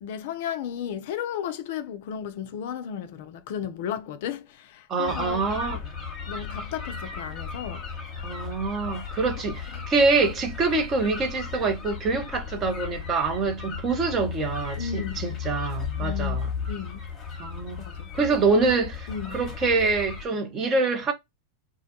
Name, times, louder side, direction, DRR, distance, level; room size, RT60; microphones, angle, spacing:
voice 1, 0.0-5.5 6.3-7.9 9.7-9.8 14.8-15.2 16.0-16.4 16.7-17.0 17.8-18.6 19.1-19.4, left 8 dB, 50° left, 0.3 m, -34 dB
voice 2, 4.9-5.8 8.2-16.5 17.4-17.8 18.1-21.1, right 3 dB, 30° right, 0.6 m, -25 dB
sound 1, 5.1-20.3, left 6 dB, 25° left, 0.9 m, -35 dB
2.3 x 2.1 x 2.6 m
figure-of-eight pair, 90°, 0 cm